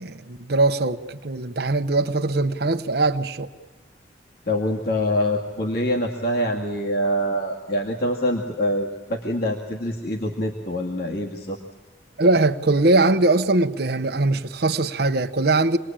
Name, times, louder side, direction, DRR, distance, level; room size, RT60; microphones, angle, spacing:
voice 1, 0.0-3.5 12.2-15.8, right 2 dB, 55° right, 0.9 m, -21 dB
voice 2, 4.5-11.6, equal, 55° left, 2.2 m, -25 dB
26.5 x 20.5 x 8.9 m
head